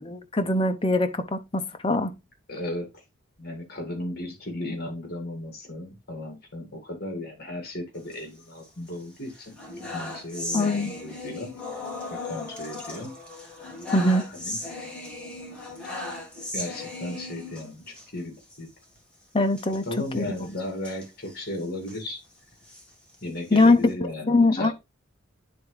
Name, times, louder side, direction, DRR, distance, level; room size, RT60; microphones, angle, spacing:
voice 1, 0.0-2.1 10.5-10.9 13.9-14.2 19.3-19.8 20.1-20.2 23.5-23.9 24.3-24.7, left 2 dB, 25° left, 0.6 m, -22 dB
voice 2, 2.5-3.0 3.4-9.6 9.9-11.8 12.1-13.1 14.3-14.6 16.5-18.7 19.7-22.2 23.2-24.7, left 1 dB, 45° left, 2.1 m, -35 dB
sound 1, 8.0-8.9 9.3-18.1 18.4-18.6 18.8-19.0 19.5-22.0 22.5-23.9, left 2 dB, 5° left, 1.7 m, -38 dB
10.5 x 3.5 x 3.2 m
head